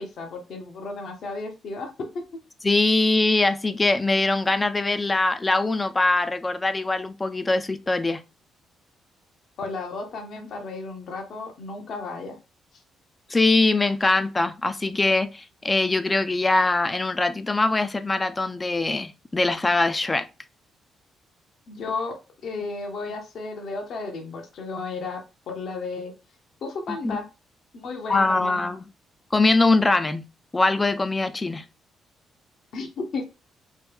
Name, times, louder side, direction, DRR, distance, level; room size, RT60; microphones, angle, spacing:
voice 1, 0.0-2.2 9.6-12.4 21.7-22.2 22.4-26.1 26.6-27.3 27.7-28.6 32.7-33.3, left 3 dB, 65° left, 0.8 m, -33 dB
voice 2, 2.6-8.2 13.3-20.3 27.0-27.2 28.1-28.8 29.3-30.3 30.5-31.6, left 2 dB, 20° left, 0.3 m, -22 dB
3.1 x 2.2 x 3.4 m
cardioid pair, 90°, 0 cm